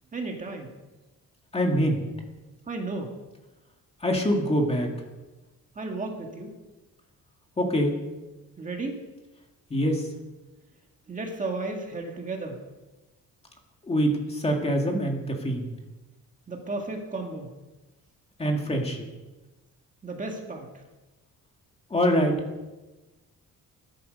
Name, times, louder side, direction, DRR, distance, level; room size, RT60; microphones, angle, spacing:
voice 1, 0.1-0.7 2.7-3.1 5.8-6.5 8.6-9.0 11.1-12.6 16.5-17.5 20.0-20.7, right 3 dB, 25° right, 2 dB, 1.9 m, -33 dB
voice 2, 1.5-2.0 4.0-4.9 7.6-7.9 9.7-10.1 13.9-15.7 18.4-19.0 21.9-22.4, equal, 20° left, 2 dB, 2.1 m, -24 dB
21.0 x 12.0 x 5.3 m, 1.1 s
cardioid pair, 180°, 32 cm